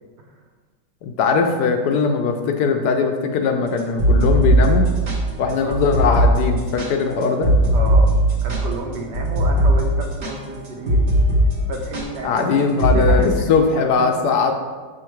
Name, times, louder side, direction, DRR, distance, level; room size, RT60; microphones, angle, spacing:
voice 1, 1.0-4.9 5.4-7.5 12.2-14.5, left 5 dB, 75° left, 4 dB, 1.1 m, -20 dB
sound 1, 3.8-11.5 11.7-12.0 12.8-13.2, right 1 dB, 50° right, 1.2 m, -18 dB
voice 2, 7.7-8.1 8.4-11.0 11.7-13.5 14.2-14.3, right 2 dB, 70° right, 1 dB, 1.4 m, -30 dB
6.2 x 3.7 x 4.5 m, 1.4 s
omnidirectional pair, 2.0 m